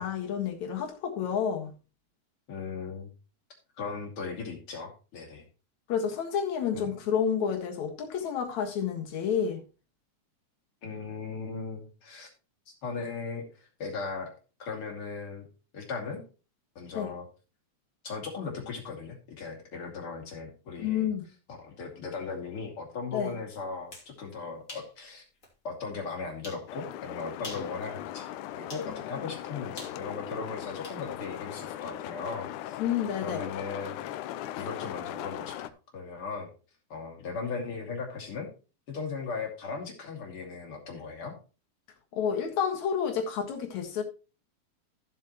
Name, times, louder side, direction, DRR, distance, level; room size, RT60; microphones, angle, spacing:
voice 1, 0.0-1.7 5.9-9.6 16.9-17.1 20.8-21.2 23.1-23.4 32.8-33.4 42.1-44.0, left 7 dB, 70° left, 3.0 m, -30 dB
voice 2, 2.5-3.1 3.8-5.4 6.7-6.9 10.8-12.3 12.7-14.3 14.6-15.5 15.7-16.2 16.7-17.3 18.0-21.1 21.6-25.2 25.6-32.8 33.2-34.0 34.5-36.5 36.9-38.5 38.9-41.4, left 4 dB, 45° left, 3.2 m, -38 dB
sound 1, 23.7-24.1 24.7-24.9 25.4-25.5 26.4-26.7 27.3-27.7 28.7-28.9 29.8-31.0, left 2 dB, 25° left, 2.8 m, -44 dB
sound 2, 26.7-35.7, left 12 dB, 90° left, 2.1 m, -39 dB
14.0 x 7.5 x 3.0 m
omnidirectional pair, 3.4 m